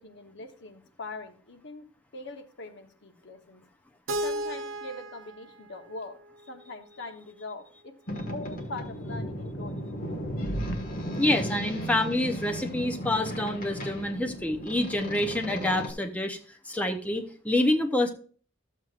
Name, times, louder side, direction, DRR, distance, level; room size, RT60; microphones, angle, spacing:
voice 1, 0.0-3.6 4.2-6.2 6.5-8.0 8.3-9.8, left 2 dB, 65° left, 6 dB, 1.0 m, -42 dB
Keyboard (musical), 4.1-7.0, right 1 dB, 80° right, 0.7 m, -35 dB
Boat Water vehicle, 8.1-15.9, equal, 45° left, 1.6 m, -35 dB
voice 2, 11.2-18.1, left 1 dB, 10° left, 3 dB, 0.7 m, -27 dB
13.0 x 7.3 x 2.4 m, 0.42 s
head